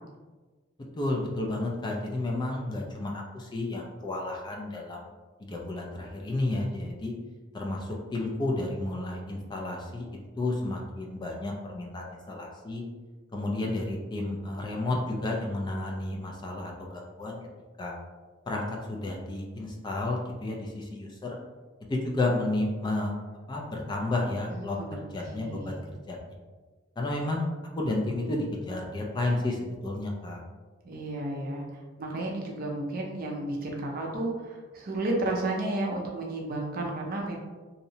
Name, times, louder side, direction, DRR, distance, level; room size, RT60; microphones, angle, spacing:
voice 1, 1.0-5.1 5.4-7.1 7.5-12.8 13.3-17.4 17.8-17.9 18.5-21.4 21.9-23.1 23.5-25.8 26.1-26.2 27.0-27.4 27.8-30.4, left 2 dB, 20° left, -1 dB, 0.3 m, -31 dB
voice 2, 24.5-25.8 30.8-37.4, right 2 dB, 50° right, 0 dB, 0.5 m, -32 dB
2.7 x 2.0 x 2.6 m, 1.3 s
head